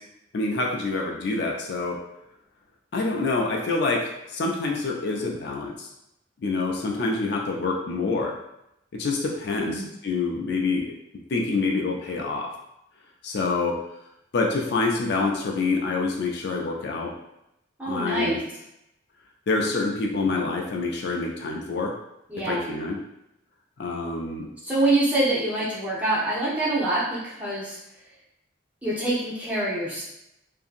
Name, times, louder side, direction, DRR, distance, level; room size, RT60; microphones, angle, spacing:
voice 1, 0.3-2.0 2.9-5.9 6.4-8.4 8.9-10.9 11.3-12.5 13.2-13.8 14.3-17.1 17.8-18.4 19.5-21.9 22.5-23.0 23.8-24.5, left 3 dB, 55° left, 0 dB, 0.4 m, -26 dB
voice 2, 9.6-9.9 17.8-18.4 22.3-22.7 24.6-27.8 28.8-30.0, right 2 dB, 10° right, -8 dB, 0.7 m, -25 dB
2.7 x 2.6 x 2.4 m, 0.83 s
head